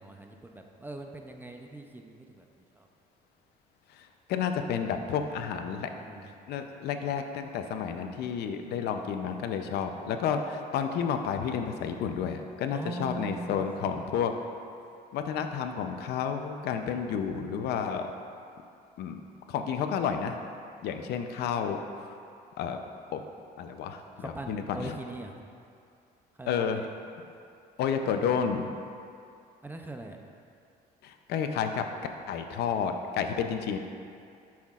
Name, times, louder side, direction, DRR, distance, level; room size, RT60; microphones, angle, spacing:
voice 1, 0.0-2.9 6.0-6.3 12.7-14.0 24.2-25.4 26.4-26.9 29.6-30.2, right 2 dB, 10° right, 3 dB, 0.5 m, -41 dB
voice 2, 4.0-5.9 6.2-14.3 15.1-18.1 19.0-19.2 19.5-20.4 20.8-22.1 22.6-22.8 23.1-23.2 23.6-24.9 26.5-26.8 27.8-28.7 31.0-31.8 32.3-33.8, left 7 dB, 75° left, 6 dB, 0.5 m, -31 dB
10.5 x 5.8 x 2.4 m, 2.4 s
cardioid pair, 110°, 17 cm